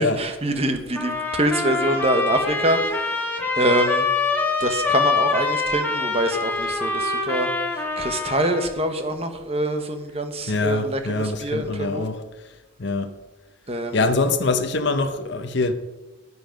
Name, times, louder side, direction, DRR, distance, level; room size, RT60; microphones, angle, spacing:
voice 1, 0.0-3.2 3.6-4.1 4.6-12.1 13.7-14.0, right 1 dB, 30° right, 1.1 m, -25 dB
sound 1, 1.0-8.7, left 3 dB, 10° left, 1.4 m, -25 dB
voice 2, 10.5-12.2 12.8-13.1 13.9-15.7, left 3 dB, 55° left, 0.8 m, -24 dB
10.0 x 9.8 x 5.2 m
head